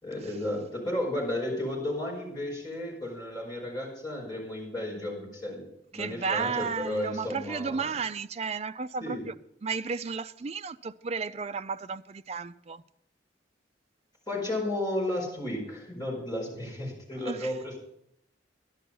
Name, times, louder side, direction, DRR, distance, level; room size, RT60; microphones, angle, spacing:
voice 1, 0.0-5.6 5.9-7.8 9.0-9.3 14.3-17.8, left 1 dB, 20° left, 5.1 m, -33 dB
voice 2, 5.9-9.3 9.6-12.8 17.2-17.5, right 5 dB, 35° right, 0.4 m, -33 dB
11.5 x 11.0 x 5.4 m
head